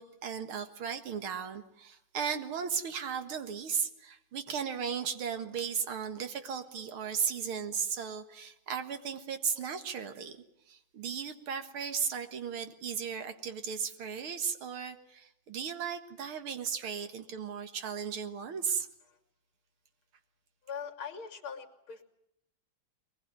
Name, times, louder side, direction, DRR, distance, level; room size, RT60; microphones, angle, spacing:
voice 1, 0.0-18.9, right 7 dB, 85° right, 8 dB, 2.5 m, -36 dB
voice 2, 20.7-22.0, left 6 dB, 80° left, 5 dB, 3.2 m, -41 dB
23.0 x 20.5 x 9.5 m, 0.79 s
omnidirectional pair, 2.3 m